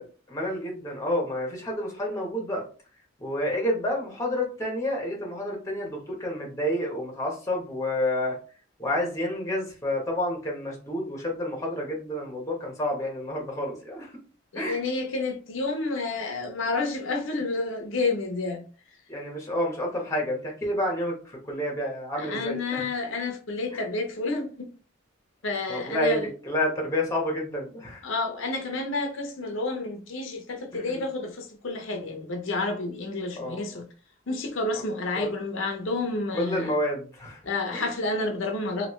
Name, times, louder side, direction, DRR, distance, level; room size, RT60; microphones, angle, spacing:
voice 1, 0.3-2.6 3.2-8.4 8.8-14.1 14.5-14.8 19.1-22.9 23.7-23.8 25.7-28.1 30.7-31.0 33.4-33.8 35.2-35.3 36.3-37.4 37.7-37.9, left 1 dB, 15° left, 0.9 m, -29 dB
voice 2, 14.5-18.6 22.2-24.7 25.4-26.3 28.0-33.9 34.3-36.7 37.4-38.9, left 3 dB, 70° left, 0.6 m, -30 dB
3.0 x 2.8 x 3.0 m
head